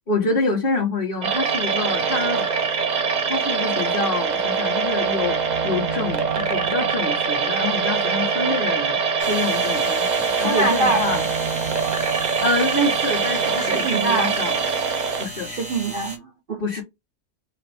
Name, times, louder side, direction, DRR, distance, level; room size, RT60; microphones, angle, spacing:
voice 1, 0.1-2.5 3.0-5.3 5.6-9.0 9.3-11.2 12.4-14.5 15.2-15.5 16.6-16.8, left 2 dB, 40° left, 1.4 m, -26 dB
sound 1, 1.2-15.3, right 5 dB, 75° right, 0.4 m, -23 dB
sound 2, 9.2-16.2, right 1 dB, 5° right, 1.2 m, -35 dB
voice 2, 10.4-11.1 13.6-14.3 15.5-16.8, right 3 dB, 50° right, 0.7 m, -24 dB
4.9 x 2.5 x 3.3 m
omnidirectional pair, 1.6 m